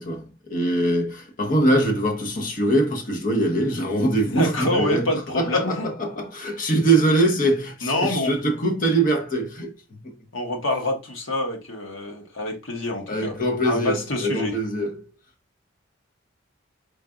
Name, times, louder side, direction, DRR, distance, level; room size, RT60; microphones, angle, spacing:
voice 1, 0.0-10.2 13.1-15.0, right 1 dB, 40° left, 0.9 m, -23 dB
voice 2, 4.3-5.9 7.8-8.3 10.3-13.3 13.6-14.6, left 1 dB, 90° left, 1.3 m, -26 dB
4.7 x 4.0 x 2.4 m
head